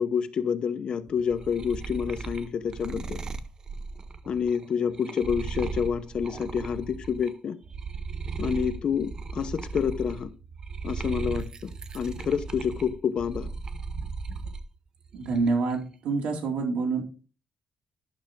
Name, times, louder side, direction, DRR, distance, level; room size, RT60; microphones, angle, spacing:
voice 1, 0.0-3.2 4.3-7.6 8.4-10.3 10.8-13.5, left 7 dB, 40° left, 0.8 m, -28 dB
sound 1, 1.1-7.3 7.6-14.7 15.1-15.7, right 4 dB, 30° right, 0.6 m, -36 dB
voice 2, 15.1-17.0, right 4 dB, 75° right, 2.5 m, -27 dB
11.5 x 5.8 x 3.7 m
cardioid pair, 165°, 2 cm